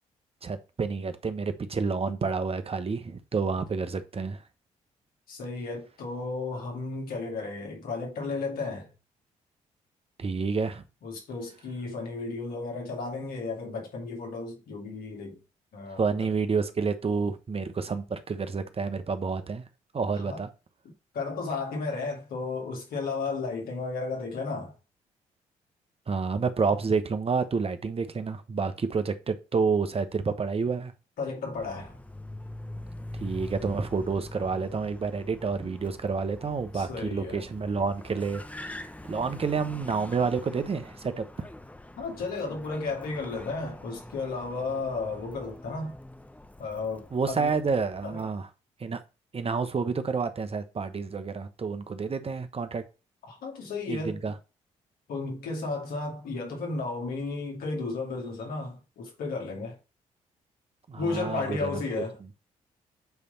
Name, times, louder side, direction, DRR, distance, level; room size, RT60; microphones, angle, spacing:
voice 1, 0.4-4.4 10.2-10.8 16.0-19.6 19.9-20.5 26.1-30.9 33.1-38.8 39.1-41.5 47.1-48.5 48.8-49.0 49.3-52.8 53.9-54.4 60.9-62.0, right 5 dB, 40° right, 1.1 m, -29 dB
voice 2, 5.3-8.9 11.0-15.4 15.7-16.3 20.2-20.4 21.1-24.7 31.2-32.0 35.5-35.7 36.7-37.5 42.0-46.0 46.6-47.6 48.0-48.2 53.2-54.3 55.1-59.8 61.0-62.2, left 3 dB, 75° left, 2.6 m, -33 dB
Car, 31.5-48.3, left 1 dB, 10° left, 0.9 m, -44 dB
8.3 x 3.4 x 4.1 m
supercardioid pair, 55°, 15 cm